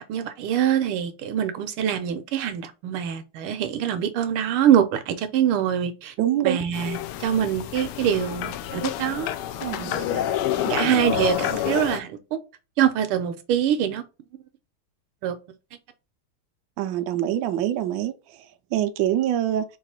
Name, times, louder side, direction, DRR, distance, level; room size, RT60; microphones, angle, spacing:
voice 1, 0.1-6.1 6.4-9.3 10.0-10.2 10.7-12.1 12.8-14.0 15.2-15.4, right 9 dB, 90° right, 1.6 m, -24 dB
voice 2, 6.2-6.6 9.6-10.0 16.8-19.6, right 11 dB, 70° right, 1.3 m, -25 dB
sound 1, 6.7-12.0, left 11 dB, 85° left, 1.5 m, -28 dB
4.6 x 2.4 x 4.2 m
omnidirectional pair, 2.3 m